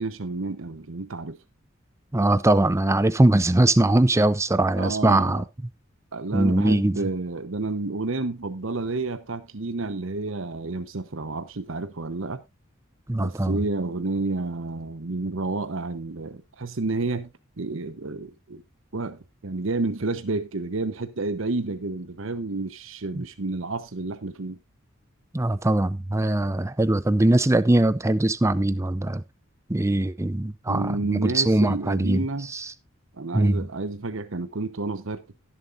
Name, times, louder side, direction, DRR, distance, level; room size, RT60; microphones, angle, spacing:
voice 1, 0.0-1.4 4.8-5.4 6.1-12.4 13.2-18.6 18.9-24.6 30.7-32.5 33.1-35.4, right 3 dB, 65° right, 0.9 m, -30 dB
voice 2, 2.1-5.4 6.3-7.0 13.1-13.6 23.1-23.2 25.3-29.2 29.7-32.2 32.5-32.7 33.3-33.6, right 1 dB, 15° right, 0.6 m, -21 dB
18.0 x 7.4 x 2.6 m
head